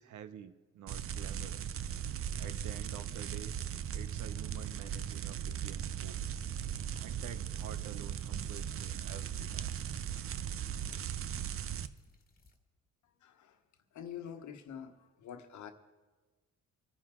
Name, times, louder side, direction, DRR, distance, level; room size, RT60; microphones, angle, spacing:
voice 1, 0.0-1.8 2.4-3.6 3.9-6.4 7.0-9.8, right 9 dB, 75° right, 12 dB, 0.8 m, -49 dB
sound 1, 0.9-11.9, right 9 dB, 45° right, 0.6 m, -38 dB
sound 2, 7.4-12.6, left 3 dB, 30° left, 1.7 m, -62 dB
voice 2, 13.0-13.6 13.9-15.7, left 8 dB, 70° left, 7 dB, 1.2 m, -46 dB
25.5 x 9.7 x 3.7 m, 1.3 s
cardioid pair, 90°, 30 cm